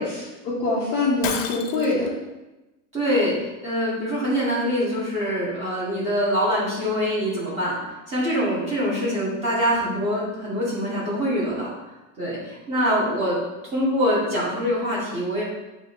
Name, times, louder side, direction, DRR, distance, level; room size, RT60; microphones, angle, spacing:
voice 1, 0.0-2.1, left 2 dB, 25° left, -7 dB, 0.4 m, -24 dB
Shatter, 1.2-2.1, left 7 dB, 75° left, 0.6 m, -30 dB
voice 2, 2.9-7.8 8.1-11.7 12.2-13.4 13.7-15.4, equal, 15° right, -7 dB, 1.1 m, -24 dB
7.1 x 2.6 x 2.4 m, 1.1 s
supercardioid pair, 180°, 40 cm